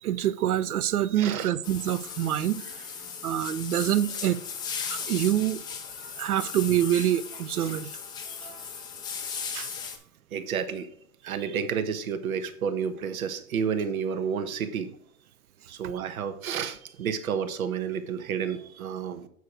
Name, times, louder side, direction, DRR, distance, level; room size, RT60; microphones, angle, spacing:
voice 1, 0.0-2.6 3.2-4.4 4.9-5.6 6.0-7.9 8.4-8.5 9.5-9.7, right 11 dB, 90° right, 0.7 m, -26 dB
voice 2, 1.2-1.5 8.3-8.7 10.3-10.9 11.2-14.9 15.7-19.3, right 7 dB, 70° right, 1.2 m, -31 dB
sound 1, 1.6-10.0, left 6 dB, 10° left, 0.4 m, -37 dB
8.3 x 4.7 x 4.6 m
hypercardioid pair, 130°, 43 cm